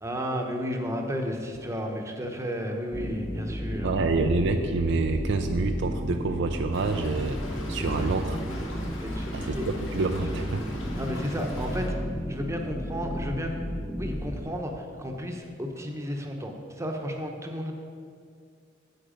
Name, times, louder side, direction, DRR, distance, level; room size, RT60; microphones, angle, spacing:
voice 1, 0.0-3.9 7.8-8.2 9.0-9.3 9.5-9.7 11.0-12.0 12.3-13.5 14.0-17.7, equal, 15° right, 2 dB, 0.9 m, -33 dB
sound 1, 2.9-14.4, equal, 10° left, 0.7 m, -33 dB
voice 2, 3.8-8.4 9.3-10.8, right 3 dB, 65° right, 6 dB, 0.5 m, -27 dB
Stream / Trickle dribble, 6.7-11.9, left 1 dB, 85° left, 1.6 m, -41 dB
8.9 x 8.1 x 5.2 m, 2.2 s
head